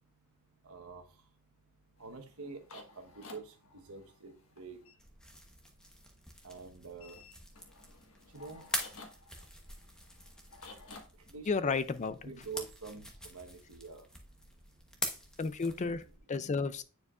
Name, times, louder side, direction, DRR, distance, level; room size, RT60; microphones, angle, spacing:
voice 1, 0.7-1.0 2.0-3.4 3.9-4.8 6.4-7.2 8.3-8.6 11.3-11.7 12.2-14.0, right 5 dB, 75° right, 1.2 m, -46 dB
sound 1, 2.0-5.0 7.0-11.0, left 3 dB, 70° left, 1.4 m, -54 dB
sound 2, 5.0-16.2, equal, 5° left, 1.0 m, -45 dB
voice 2, 11.5-12.3 15.4-16.8, left 4 dB, 30° left, 0.4 m, -33 dB
9.5 x 4.6 x 2.4 m
head